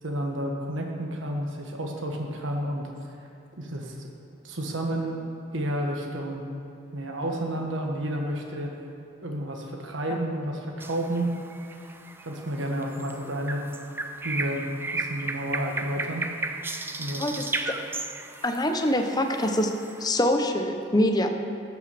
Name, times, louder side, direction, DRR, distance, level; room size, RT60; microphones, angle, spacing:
voice 1, 0.0-2.9 3.6-4.1 4.4-5.2 5.5-6.4 6.9-8.7 9.2-11.3 12.2-13.7 14.2-14.6 14.9-16.3 17.0-17.6, right 1 dB, 75° right, 1 dB, 1.3 m, -31 dB
sound 1, 10.8-20.1, right 3 dB, 10° right, 0.5 m, -35 dB
voice 2, 18.4-19.7 20.0-21.3, left 1 dB, 20° left, 5 dB, 0.8 m, -24 dB
12.0 x 5.9 x 7.4 m, 2.8 s
head